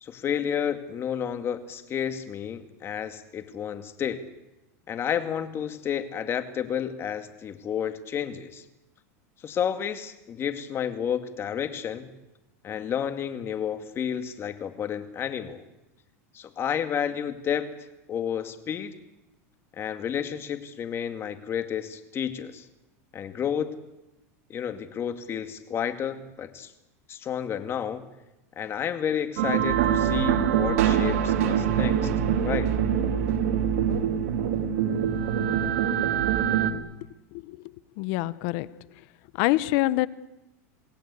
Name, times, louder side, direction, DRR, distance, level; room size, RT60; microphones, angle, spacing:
voice 1, 0.0-4.2 4.9-8.6 9.4-12.1 12.6-15.6 16.3-17.7 18.1-18.9 19.7-22.6 23.1-23.8 24.5-26.7 27.1-28.0 28.6-32.1 32.4-32.7, left 8 dB, 30° left, 2.2 m, -31 dB
sound 1, 29.4-36.7, right 8 dB, 75° right, 2.8 m, -24 dB
voice 2, 38.0-38.7 39.3-40.1, left 18 dB, 60° left, 1.0 m, -25 dB
27.5 x 18.5 x 8.4 m
supercardioid pair, 130°, 8 cm